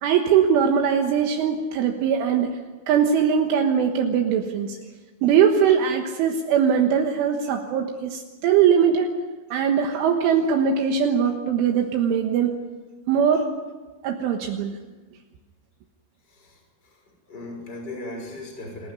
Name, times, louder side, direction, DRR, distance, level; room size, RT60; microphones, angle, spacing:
voice 1, 0.0-2.6 2.9-4.8 5.2-9.1 9.5-12.6 13.1-13.5 14.0-14.8, right 7 dB, 75° right, 3 dB, 3.7 m, -21 dB
voice 2, 16.2-18.9, left 1 dB, 20° left, 2 dB, 6.2 m, -38 dB
27.5 x 15.0 x 9.7 m, 1.3 s
omnidirectional pair, 6.0 m